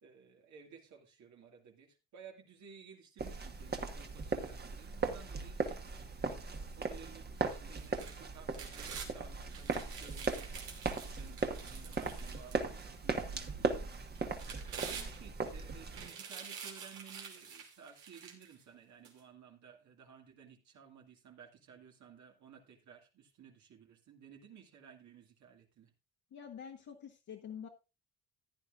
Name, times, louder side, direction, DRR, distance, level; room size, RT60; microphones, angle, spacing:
voice 1, 0.0-25.9, right 7 dB, 70° right, 2 dB, 2.3 m, -57 dB
sound 1, 3.2-16.1, right 4 dB, 35° right, 1.3 m, -38 dB
sound 2, 7.7-9.1 9.5-12.9 13.4-13.5 14.1-15.5 15.9-18.5 19.0-19.1, right 6 dB, 90° right, 2.7 m, -47 dB
voice 2, 26.3-27.7, left 8 dB, 70° left, -1 dB, 1.5 m, -47 dB
14.5 x 9.9 x 2.5 m, 0.27 s
cardioid pair, 90°, 30 cm